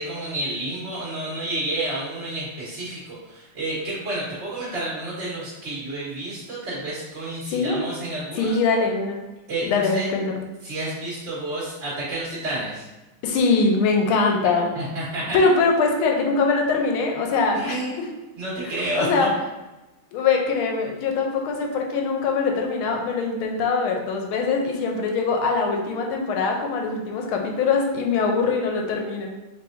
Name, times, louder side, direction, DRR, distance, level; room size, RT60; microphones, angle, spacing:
voice 1, 0.0-8.6 9.5-10.1 10.6-12.9 14.7-15.4 17.5-18.0 18.4-19.4, right 1 dB, 35° right, -9 dB, 1.6 m, -30 dB
voice 2, 7.5-7.8 8.4-9.2 9.6-10.4 13.2-14.7 15.3-18.1 19.0-19.3 20.1-29.3, left 4 dB, 85° left, 2 dB, 1.4 m, -22 dB
4.8 x 3.2 x 2.6 m, 1.1 s
omnidirectional pair, 2.3 m